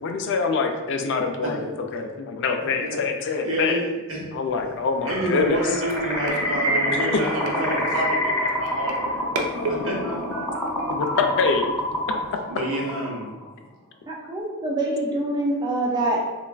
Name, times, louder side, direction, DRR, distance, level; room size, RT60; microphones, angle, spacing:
voice 1, 0.0-3.8 4.3-5.8 10.9-11.7, left 4 dB, 55° left, 5 dB, 0.3 m, -25 dB
voice 2, 3.2-4.2 5.0-9.2 9.6-10.2 12.5-13.3, right 1 dB, 65° right, -3 dB, 0.7 m, -29 dB
sound 1, 4.4-12.3, right 3 dB, 90° right, 0.4 m, -34 dB
sound 2, 5.0-13.5, left 1 dB, 15° left, 0.7 m, -27 dB
voice 3, 14.1-16.3, right 1 dB, 20° right, -2 dB, 0.4 m, -25 dB
3.1 x 2.3 x 2.2 m, 1.2 s
head